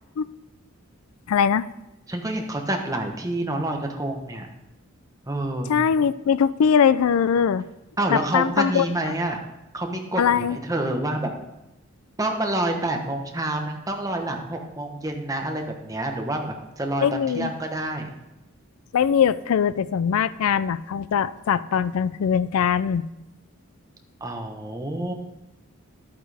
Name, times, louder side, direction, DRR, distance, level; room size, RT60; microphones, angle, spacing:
voice 1, 1.3-1.7 5.7-7.7 8.1-8.9 10.2-10.6 17.0-17.5 18.9-23.0, left 7 dB, 85° left, 16 dB, 0.4 m, -21 dB
voice 2, 2.1-4.5 5.3-5.7 8.0-9.4 9.7-11.3 12.2-18.1 24.2-25.1, right 1 dB, 15° right, 3 dB, 1.1 m, -28 dB
11.5 x 8.7 x 3.4 m, 0.94 s
head